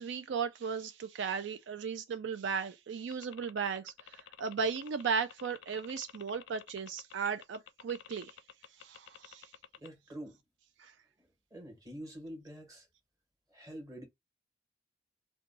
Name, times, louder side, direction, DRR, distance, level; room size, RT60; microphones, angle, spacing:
voice 1, 0.0-8.4 8.8-9.5 10.8-10.9, right 6 dB, 80° right, 0.4 m, -36 dB
sound 1, 3.1-9.9, left 9 dB, 75° left, 0.4 m, -52 dB
voice 2, 9.8-10.4 11.2-12.9 13.5-14.1, right 1 dB, 20° right, 1.4 m, -46 dB
2.7 x 2.2 x 3.9 m
head